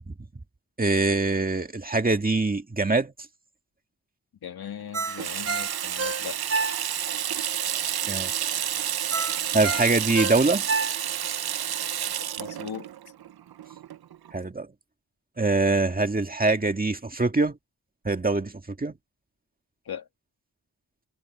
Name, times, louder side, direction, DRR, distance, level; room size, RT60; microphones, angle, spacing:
voice 1, 0.8-3.1 8.0-8.3 9.5-10.7 14.3-14.7 15.4-17.6 18.0-18.5 18.8-19.0, right 3 dB, 25° right, 1.9 m, -23 dB
voice 2, 4.4-6.4 12.2-12.9 19.9-20.1, left 8 dB, 85° left, 1.9 m, -38 dB
Ringtone, 4.9-7.2 7.6-7.7 9.1-11.4 11.8-11.9, right 4 dB, 40° right, 3.3 m, -29 dB
Water tap faucet / Sink (filling or washing), 5.0-14.3, right 10 dB, 85° right, 0.7 m, -30 dB
wide cardioid pair, 140°, 36 cm